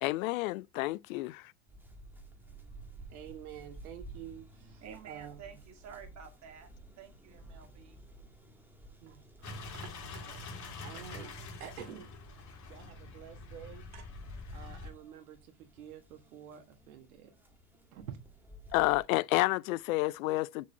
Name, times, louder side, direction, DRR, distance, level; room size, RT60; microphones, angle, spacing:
voice 1, 0.0-1.4 18.7-20.6, left 20 dB, 65° left, 0.5 m, -30 dB
sound 1, 1.7-19.0, right 2 dB, 5° right, 1.6 m, -54 dB
voice 2, 3.1-5.4 9.0-9.2 10.8-11.3 11.6-12.2 12.6-13.9 14.5-17.3 17.9-18.2, right 10 dB, 75° right, 1.5 m, -48 dB
voice 3, 4.8-6.7 7.0-8.0 9.1-10.4 10.9-11.3 13.9-14.1, right 7 dB, 40° right, 2.2 m, -52 dB
sound 2, 9.4-14.9, left 3 dB, 40° left, 2.7 m, -45 dB
6.8 x 4.7 x 4.3 m
hypercardioid pair, 90°, 44 cm